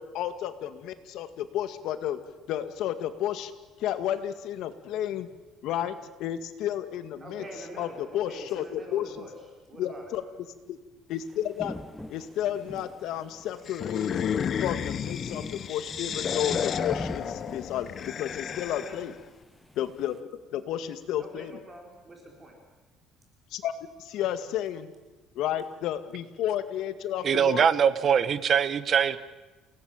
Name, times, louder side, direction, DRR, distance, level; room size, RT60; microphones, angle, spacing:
voice 1, 0.0-2.2 2.5-3.5 3.8-5.3 5.6-5.9 6.2-7.4 7.8-9.1 9.8-10.2 10.7-10.8 11.1-11.8 12.1-14.3 14.6-19.1 19.8-20.2 20.5-21.5 23.5-23.7 24.0-24.9 25.4-27.7, left 11 dB, 70° left, 10 dB, 2.1 m, -32 dB
voice 2, 7.2-10.1 18.7-19.0 21.2-22.6, right 1 dB, 20° right, 1 dB, 5.0 m, -44 dB
sound 1, 11.1-20.2, left 1 dB, 5° left, 1.2 m, -43 dB
sound 2, 13.7-19.1, left 8 dB, 40° left, 0.9 m, -32 dB
voice 3, 27.2-29.2, right 7 dB, 40° right, 14 dB, 1.2 m, -22 dB
29.0 x 18.5 x 9.0 m, 1.2 s
cardioid pair, 145°, 0 cm